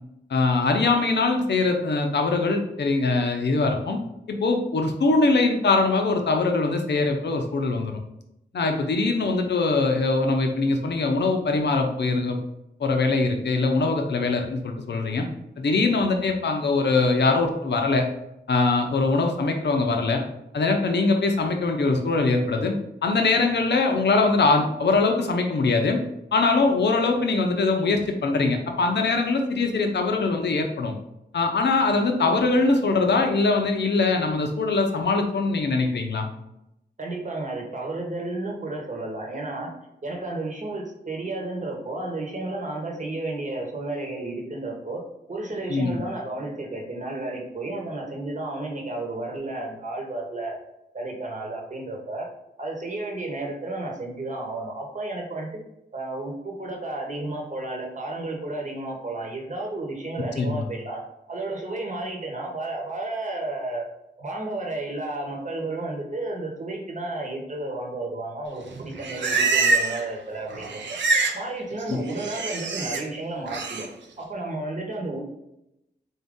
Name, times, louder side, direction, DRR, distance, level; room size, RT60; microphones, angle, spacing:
voice 1, 0.3-4.0 4.3-8.0 8.5-12.4 12.8-15.3 15.6-18.0 18.5-20.2 20.5-22.7 23.0-26.0 26.3-30.9 31.3-36.3 45.7-46.0 60.4-60.6, left 3 dB, 70° left, 4 dB, 0.7 m, -22 dB
voice 2, 37.0-39.7 40.0-45.0 45.3-50.6 50.9-52.3 52.6-55.5 55.9-61.0 61.3-63.9 64.2-70.8 71.3-73.9 74.2-75.2, right 2 dB, 45° right, 0 dB, 1.1 m, -32 dB
Livestock farm animals working animals, 68.7-70.1 70.4-71.4 71.7-73.0 73.5-73.9, right 3 dB, 80° right, 0.5 m, -25 dB
3.8 x 2.7 x 3.6 m, 0.85 s
cardioid pair, 55°, 18 cm